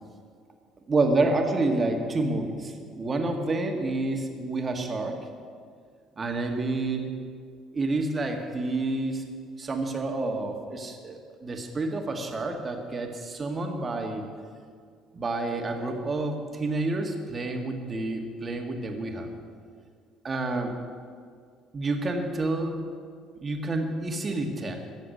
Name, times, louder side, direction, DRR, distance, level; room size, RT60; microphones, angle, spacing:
voice 1, 0.9-5.2 6.2-7.1 7.7-9.2 9.6-14.3 15.1-19.3 20.2-20.7 21.7-22.8 23.4-24.8, right 2 dB, 35° right, 3 dB, 1.9 m, -29 dB
14.5 x 7.3 x 7.9 m, 2.1 s
hypercardioid pair, 55°, 0 cm